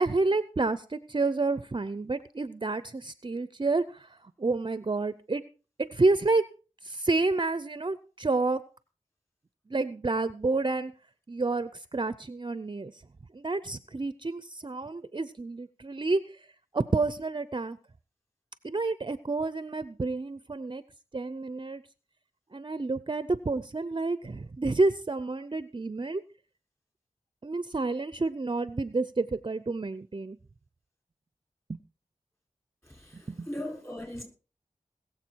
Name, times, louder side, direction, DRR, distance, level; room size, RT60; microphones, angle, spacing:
voice 1, 0.0-5.4 5.8-6.4 6.8-8.6 9.7-10.9 11.3-13.0 13.3-16.4 16.7-17.8 18.6-20.8 21.1-21.8 22.5-26.2 27.4-30.4 31.7-31.8 33.1-33.5, right 3 dB, 35° right, 0.6 m, -29 dB
voice 2, 32.8-34.2, left 1 dB, 20° left, 6.1 m, -39 dB
20.5 x 7.5 x 4.6 m
wide cardioid pair, 80°, 14 cm